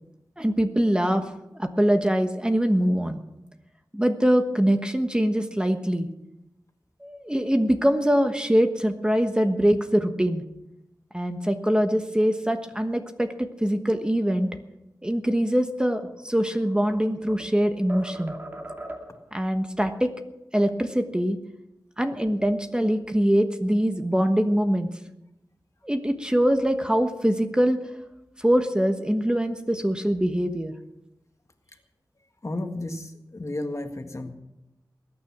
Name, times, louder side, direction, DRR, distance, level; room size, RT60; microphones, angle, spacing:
voice 1, 0.4-1.3 1.5-3.2 3.9-6.1 7.0-10.4 11.1-14.5 15.0-18.3 19.3-20.1 20.5-21.4 22.0-24.9 25.8-27.8 28.4-30.7, equal, 10° right, 6 dB, 1.2 m, -23 dB
sound 1, 16.2-17.5 17.9-19.3, right 1 dB, 25° right, 2.4 m, -39 dB
voice 2, 32.4-34.3, left 2 dB, 40° left, 5 dB, 1.8 m, -32 dB
21.0 x 9.7 x 6.1 m, 0.90 s
wide cardioid pair, 70°, 8 cm